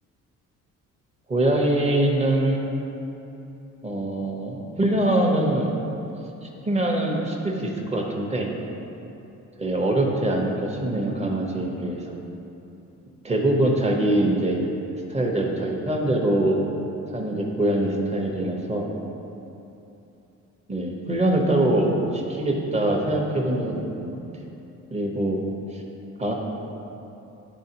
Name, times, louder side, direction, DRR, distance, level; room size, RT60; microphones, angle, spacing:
voice 1, 1.3-2.6 3.8-5.7 6.4-8.5 9.6-12.2 13.2-14.7 15.1-16.6 17.1-18.9 20.7-24.2 24.9-25.4 25.7-25.8 26.2-26.3, right 1 dB, 20° right, 0 dB, 0.9 m, -23 dB
10.0 x 3.7 x 2.9 m, 2.9 s
cardioid pair, 90°, 30 cm